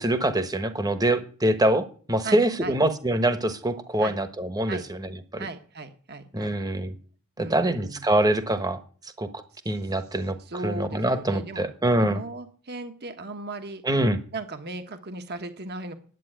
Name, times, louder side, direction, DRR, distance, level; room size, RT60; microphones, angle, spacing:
voice 1, 0.0-5.4 6.3-6.9 7.4-8.8 9.2-9.3 9.6-10.4 10.6-12.2 13.8-14.2, right 1 dB, 15° right, 10 dB, 1.2 m, -24 dB
voice 2, 2.2-2.7 4.0-4.1 4.7-4.8 5.4-6.6 7.4-8.0 9.5-9.7 10.4-11.7 12.0-13.8 14.3-15.9, right 3 dB, 45° right, 7 dB, 1.2 m, -37 dB
10.5 x 8.5 x 10.0 m, 0.44 s
head